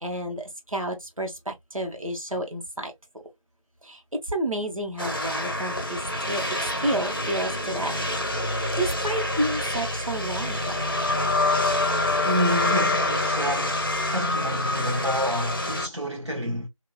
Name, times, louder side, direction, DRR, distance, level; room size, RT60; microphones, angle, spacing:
voice 1, 0.0-2.9 3.8-6.0 6.3-6.4 6.8-8.0 8.4-10.9, right 1 dB, 80° right, 1.5 m, -30 dB
sound 1, 5.0-15.9, left 2 dB, 40° left, 0.7 m, -26 dB
voice 2, 12.2-13.8 14.1-16.7, equal, 55° right, 1.1 m, -29 dB
3.1 x 2.8 x 2.3 m
figure-of-eight pair, 175°, 17 cm